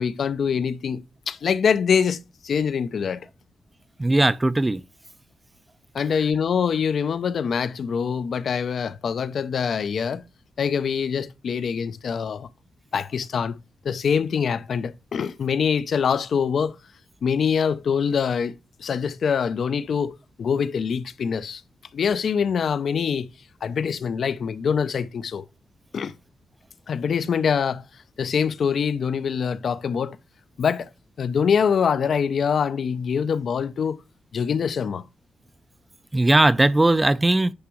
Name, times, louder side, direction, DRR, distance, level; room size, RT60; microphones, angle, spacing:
voice 1, 0.0-3.2 5.9-10.2 10.6-12.5 12.9-13.6 13.8-16.8 17.2-21.6 21.9-23.3 23.6-25.4 25.9-26.1 26.9-27.9 28.2-30.2 30.6-30.9 31.2-34.0 34.3-35.0, left 6 dB, 65° left, 0.4 m, -24 dB
voice 2, 4.0-4.8 36.1-37.5, right 2 dB, 15° right, 0.3 m, -18 dB
9.5 x 3.4 x 3.0 m
cardioid pair, 100°, 0 cm